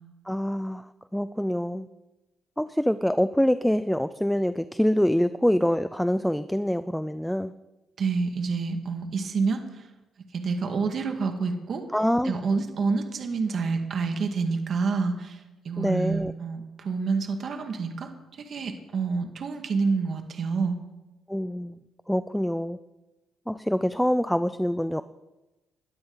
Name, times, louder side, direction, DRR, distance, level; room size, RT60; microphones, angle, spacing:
voice 1, 0.3-1.9 2.6-7.5 11.9-12.3 15.8-16.3 21.3-21.8 22.1-22.8 23.5-25.0, equal, 5° left, 13 dB, 0.4 m, -25 dB
voice 2, 8.0-9.9 10.3-11.8 12.2-20.8, right 4 dB, 55° right, 5 dB, 1.9 m, -28 dB
19.5 x 12.5 x 4.0 m, 1.0 s
cardioid pair, 90°, 0 cm